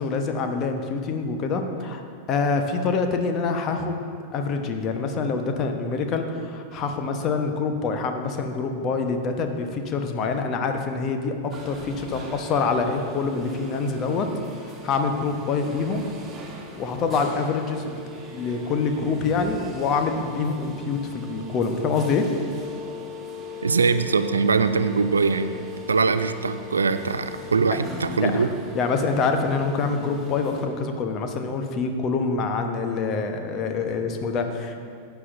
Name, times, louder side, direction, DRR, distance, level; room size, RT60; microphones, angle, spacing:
voice 1, 0.0-2.0 2.3-4.0 4.3-14.3 14.7-16.0 16.8-18.0 18.3-22.3 28.2-28.4 28.7-34.7, left 4 dB, 35° left, 5 dB, 1.0 m, -26 dB
sound 1, 11.5-30.7, left 3 dB, 25° right, 1.6 m, -39 dB
voice 2, 23.6-25.5 25.9-28.5, right 4 dB, 75° right, 10 dB, 0.4 m, -22 dB
14.5 x 9.2 x 2.6 m, 2.2 s
figure-of-eight pair, 90°, 0 cm